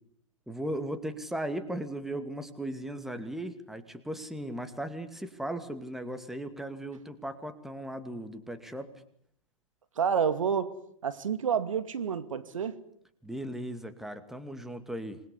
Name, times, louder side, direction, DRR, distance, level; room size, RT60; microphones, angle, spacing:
voice 1, 0.5-8.9 13.2-15.2, right 1 dB, ahead, 8 dB, 2.4 m, -37 dB
voice 2, 10.0-10.8 11.0-12.8, right 7 dB, 70° right, 12 dB, 2.3 m, -29 dB
27.5 x 21.5 x 9.9 m, 0.68 s
figure-of-eight pair, 115°, 18 cm